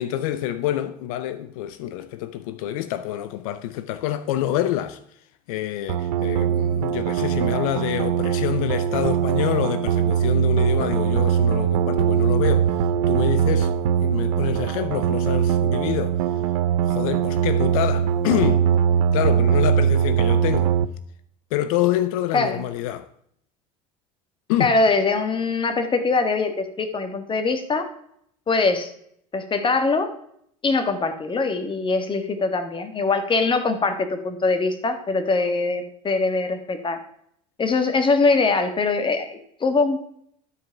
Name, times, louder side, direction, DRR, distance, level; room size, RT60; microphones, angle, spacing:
voice 1, 0.0-5.0 5.5-12.7 13.1-13.7 14.0-16.2 16.9-18.7 19.1-20.7 21.5-23.1 24.5-24.8, left 12 dB, 80° left, 0.5 m, -26 dB
sound 1, 5.9-20.9, right 8 dB, 90° right, 0.5 m, -21 dB
voice 2, 24.6-27.9 28.5-28.9 29.3-30.1 30.6-37.0 37.6-40.0, left 3 dB, 30° left, 1.6 m, -22 dB
12.5 x 4.7 x 5.7 m
supercardioid pair, 85°, 18 cm